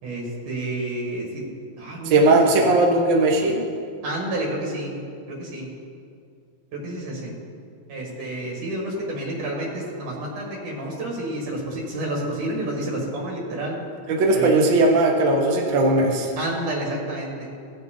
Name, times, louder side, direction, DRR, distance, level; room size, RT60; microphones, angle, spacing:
voice 1, 0.0-1.4 1.8-2.8 4.0-5.0 5.3-5.7 6.7-7.3 7.9-13.8 14.3-14.6 16.4-17.5, right 1 dB, 85° right, -3 dB, 3.4 m, -30 dB
voice 2, 2.0-3.6 14.1-16.3, right 2 dB, 50° right, 0 dB, 1.5 m, -18 dB
16.0 x 7.5 x 3.8 m, 2.4 s
omnidirectional pair, 3.5 m